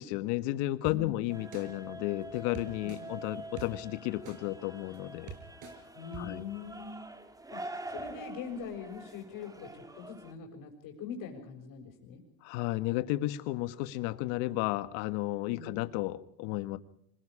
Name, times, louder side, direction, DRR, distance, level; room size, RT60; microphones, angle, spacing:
voice 1, 0.0-5.3 6.2-6.4 12.4-16.8, left 17 dB, 55° left, 13 dB, 1.6 m, -33 dB
voice 2, 0.8-1.2 2.8-3.1 5.9-7.1 7.5-7.6 7.9-12.2 15.5-15.7, left 6 dB, 40° left, -2 dB, 6.0 m, -42 dB
sound 1, 0.8-1.0 1.5-1.6 2.5-3.0 3.6-3.7 4.2-4.4 4.9-5.0 5.3-5.7 6.1-6.2, right 8 dB, 35° right, 5.3 m, -43 dB
sound 2, 1.3-10.3, right 2 dB, 5° right, 1.7 m, -46 dB
26.0 x 21.0 x 5.0 m, 0.69 s
supercardioid pair, 135°, 49 cm